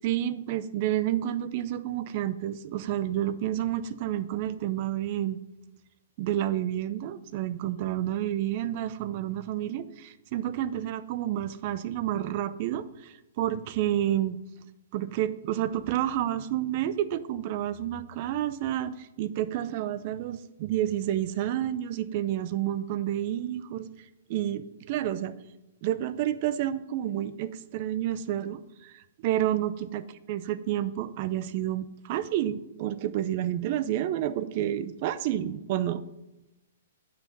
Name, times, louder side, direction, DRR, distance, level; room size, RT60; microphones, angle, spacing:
voice 1, 0.0-5.4 6.2-14.4 14.9-23.9 24.3-25.3 25.8-30.0 30.3-36.0, right 12 dB, 45° right, 14 dB, 0.6 m, -30 dB
8.9 x 5.8 x 5.3 m, 0.93 s
hypercardioid pair, 130°, 0 cm